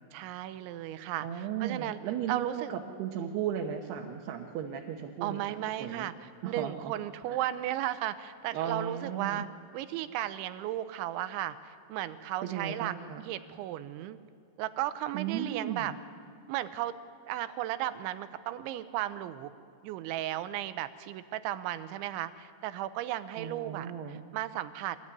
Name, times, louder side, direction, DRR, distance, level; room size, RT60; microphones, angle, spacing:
voice 1, 0.1-2.0 2.3-2.7 5.2-6.1 6.4-9.5 9.7-12.9 13.2-14.2 14.6-15.9 16.5-16.9 17.3-19.5 19.8-25.0, right 13 dB, 90° right, 12 dB, 3.2 m, -35 dB
voice 2, 1.2-6.1 6.4-6.9 7.3-7.4 8.5-9.5 12.4-13.2 15.1-15.9 23.4-24.2, right 8 dB, 70° right, 2 dB, 3.0 m, -36 dB
24.5 x 19.5 x 9.7 m, 2.5 s
omnidirectional pair, 5.2 m